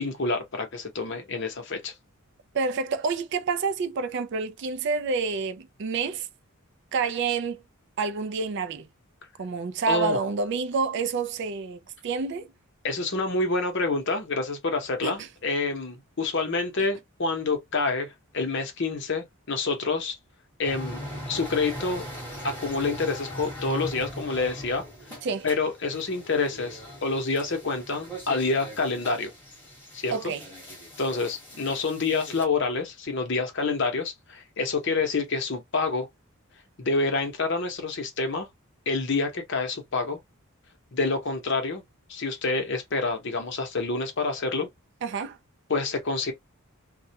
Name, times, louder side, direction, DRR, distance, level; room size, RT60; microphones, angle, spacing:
voice 1, 0.0-1.9 9.9-10.2 12.8-20.2 20.6-22.0 22.4-24.8 25.4-29.3 29.9-30.3 31.0-36.1 36.8-38.5 38.9-40.2 40.9-41.8 42.1-44.7 45.7-46.3, left 3 dB, 55° left, 0.8 m, -27 dB
voice 2, 2.5-6.3 6.9-7.6 8.0-8.9 9.4-12.5 15.0-15.3 25.2-25.5 30.1-30.4 45.0-45.4, right 4 dB, 50° right, 0.3 m, -28 dB
sound 1, 20.6-32.5, equal, 10° left, 1.1 m, -40 dB
2.3 x 2.1 x 2.7 m
head